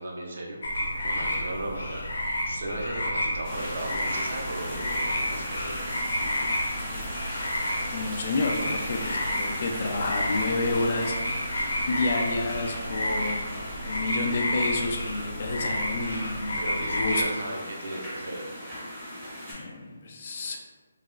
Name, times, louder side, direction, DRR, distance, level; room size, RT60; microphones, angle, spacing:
voice 1, 0.0-5.8 16.5-18.6, right 1 dB, 55° right, -1 dB, 0.6 m, -36 dB
sound 1, 0.6-17.2, left 1 dB, 85° left, 0.6 m, -31 dB
sound 2, 3.4-19.5, equal, 10° right, 0.8 m, -37 dB
voice 2, 6.9-7.2 7.9-11.1 11.9-13.5 13.8-17.2 19.5-20.6, left 3 dB, 35° left, 1 dB, 0.3 m, -30 dB
3.0 x 2.8 x 2.3 m, 1.3 s
hypercardioid pair, 175°, 0 cm